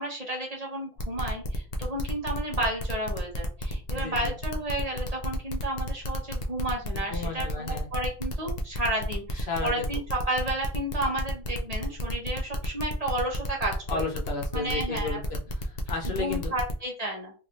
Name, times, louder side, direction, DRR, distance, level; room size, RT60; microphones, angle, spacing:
voice 1, 0.0-13.8 14.5-15.2 16.2-17.3, right 1 dB, 40° right, -1 dB, 1.1 m, -32 dB
sound 1, 1.0-16.7, left 1 dB, 50° left, 0.6 m, -34 dB
voice 2, 3.9-4.4 6.9-7.9 9.3-9.9 13.9-16.5, left 4 dB, 75° left, 1 dB, 1.1 m, -34 dB
3.1 x 2.9 x 2.6 m, 0.36 s
omnidirectional pair, 1.0 m